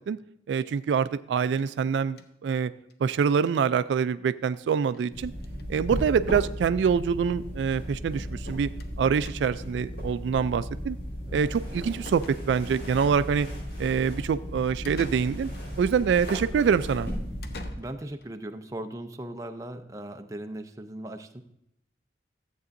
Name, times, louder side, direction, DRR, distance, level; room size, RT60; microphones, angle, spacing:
voice 1, 0.5-2.7 3.0-5.3 5.7-8.7 9.0-11.0 11.3-13.5 13.8-15.5 15.8-17.1, right 6 dB, 85° right, 14 dB, 0.3 m, -25 dB
sound 1, 1.5-2.5 2.9-3.0 3.3-3.4 3.6-3.7 4.9-5.1 5.4-5.7 6.6-6.7 7.0-7.1 8.8-9.0 9.2-9.7 11.5-11.6 12.0-12.8 14.8-15.7 17.4-18.3, left 3 dB, 60° left, 0.7 m, -48 dB
sound 2, 5.1-17.7, equal, 80° left, 4.2 m, -36 dB
voice 2, 11.2-11.6 17.8-21.4, right 1 dB, 20° right, 6 dB, 0.5 m, -38 dB
13.5 x 8.1 x 2.6 m, 0.77 s
head